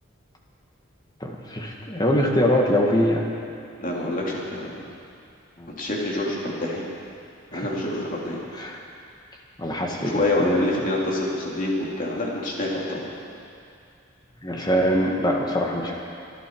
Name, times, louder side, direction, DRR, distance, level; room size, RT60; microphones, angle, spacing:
voice 1, 1.2-3.3 5.6-5.7 7.5-7.7 8.6-8.8 9.6-10.7 14.4-15.9, equal, 20° left, 0 dB, 1.6 m, -23 dB
voice 2, 3.8-4.8 5.7-6.8 7.5-8.4 10.0-13.1, left 1 dB, 40° left, -4 dB, 2.9 m, -27 dB
25.5 x 11.0 x 4.6 m, 2.5 s
head